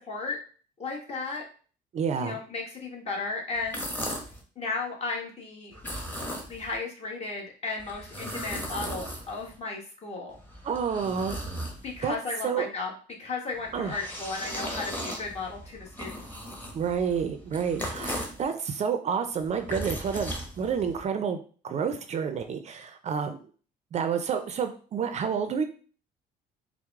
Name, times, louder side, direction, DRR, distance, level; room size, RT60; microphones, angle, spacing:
voice 1, 0.1-0.4 0.8-1.4 2.2-3.8 4.6-5.7 6.5-10.4 11.8-12.9 13.2-16.3, left 3 dB, 40° left, -1 dB, 1.2 m, -34 dB
voice 2, 1.9-2.4 10.6-11.4 12.0-12.1 12.4-12.7 13.7-14.0 16.7-23.4 23.9-25.6, right 6 dB, 40° right, 8 dB, 0.4 m, -29 dB
sound 1, 3.6-4.4 5.7-6.8 7.8-9.6 10.3-12.1 13.5-18.4 19.4-21.0, equal, 10° left, 1.0 m, -37 dB
4.6 x 2.0 x 3.5 m, 0.40 s
cardioid pair, 110°, 17 cm